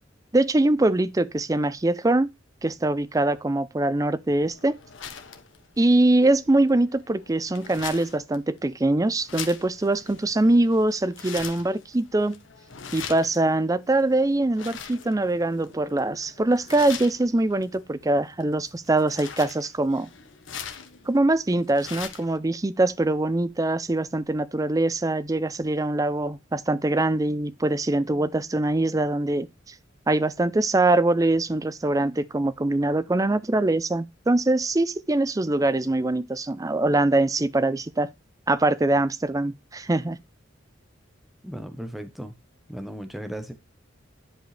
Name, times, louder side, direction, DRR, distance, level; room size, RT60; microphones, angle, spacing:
voice 1, 0.3-2.3 2.6-4.8 5.8-12.4 12.9-20.1 21.1-29.7 30.1-38.1 38.5-40.2, right 2 dB, 20° right, 0.5 m, -23 dB
sound 1, 4.3-22.4, left 7 dB, 80° left, 1.3 m, -42 dB
voice 2, 41.4-42.4 42.7-43.5, equal, ahead, 0.9 m, -36 dB
10.5 x 5.2 x 3.3 m
head